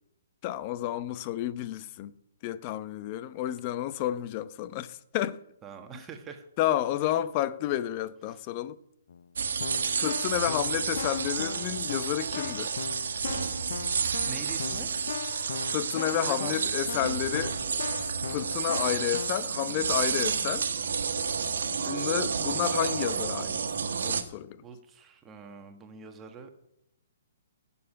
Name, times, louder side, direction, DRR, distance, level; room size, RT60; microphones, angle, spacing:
voice 1, 0.4-2.1 2.4-5.4 6.6-8.8 10.0-12.8 15.7-17.5 18.3-20.7 21.8-23.6 24.0-24.6, left 12 dB, 35° left, 0.8 m, -31 dB
voice 2, 5.6-6.5 8.3-8.4 14.1-14.9 16.1-16.6 24.6-26.6, right 6 dB, 20° right, 1.6 m, -43 dB
Keyboard (musical), 9.1-9.2 9.6-19.3, left 7 dB, 60° left, 0.5 m, -39 dB
sound 1, 9.4-24.2, right 6 dB, 65° right, 1.6 m, -30 dB
15.5 x 7.1 x 8.9 m
figure-of-eight pair, 130°, 0 cm